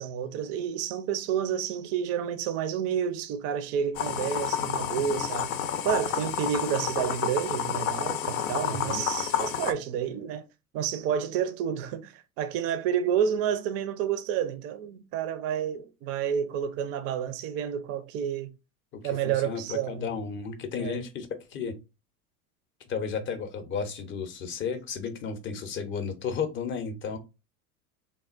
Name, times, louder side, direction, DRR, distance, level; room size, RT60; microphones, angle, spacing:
voice 1, 0.0-5.5 5.8-10.5 10.7-18.5 19.0-20.1 20.8-21.1, right 8 dB, 35° right, 0.5 m, -30 dB
sound 1, 4.0-9.7, left 9 dB, 70° left, 0.6 m, -30 dB
voice 2, 8.6-9.0 18.9-21.7 22.8-27.2, left 6 dB, 25° left, 0.6 m, -33 dB
3.5 x 2.2 x 2.4 m
hypercardioid pair, 85°, 44 cm